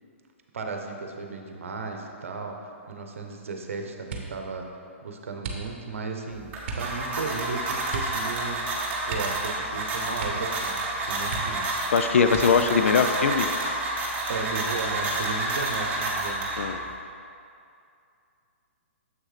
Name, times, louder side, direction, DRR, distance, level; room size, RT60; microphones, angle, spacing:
voice 1, 0.5-4.7 5.0-8.7 9.1-11.7 14.3-16.5 16.8-17.0, right 4 dB, 75° right, 3 dB, 0.8 m, -35 dB
sound 1, 4.0-4.5 5.4-6.0 6.6-6.9 7.9-8.2 8.5-8.6 9.0-9.8 10.1-10.6 10.9-11.0 11.3-11.8 12.3-12.8 13.5-14.1 14.5-14.9, right 4 dB, 50° right, 1.0 m, -36 dB
sound 2, 6.3-16.9, right 2 dB, 20° right, 1.3 m, -29 dB
voice 2, 11.9-13.5 16.6-16.8, left 6 dB, 75° left, 8 dB, 0.4 m, -21 dB
7.2 x 6.3 x 3.3 m, 2.5 s
hypercardioid pair, 135°, 7 cm